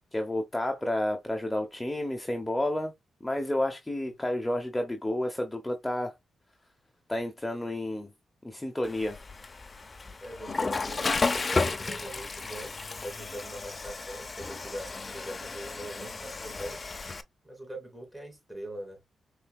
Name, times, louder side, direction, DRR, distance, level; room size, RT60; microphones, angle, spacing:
voice 1, 0.1-2.9 3.2-6.1 7.1-8.1 8.4-9.1, left 1 dB, 15° left, 0.8 m, -30 dB
Water / Toilet flush, 8.8-17.2, left 3 dB, 35° left, 0.5 m, -33 dB
voice 2, 10.2-16.8 17.4-19.0, right 1 dB, 15° right, 3.1 m, -42 dB
5.5 x 3.3 x 2.3 m
cardioid pair, 75°, 0 cm